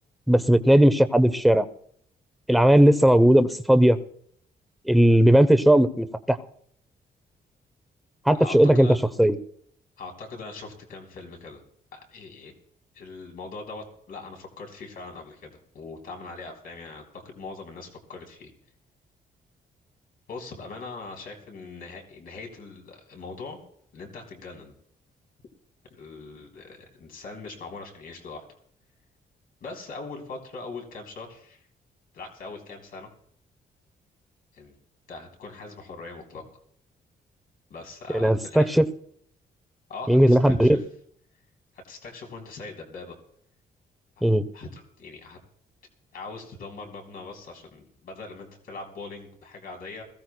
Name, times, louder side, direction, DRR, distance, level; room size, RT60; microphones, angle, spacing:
voice 1, 0.3-1.7 2.5-4.0 4.9-6.4 8.3-9.4 38.1-38.8 40.1-40.8 44.2-44.4, right 1 dB, ahead, 10 dB, 0.6 m, -17 dB
voice 2, 8.4-9.0 10.0-11.6 11.9-12.5 12.9-18.5 20.3-23.6 23.9-24.7 25.9-28.5 29.6-31.7 32.1-33.1 34.5-34.7 35.1-36.4 37.7-38.7 39.9-40.8 41.7-43.2 44.2-44.3 44.5-45.4 46.1-50.0, left 3 dB, 60° left, 3 dB, 3.4 m, -41 dB
21.5 x 16.0 x 2.2 m, 0.65 s
cardioid pair, 160°, 17 cm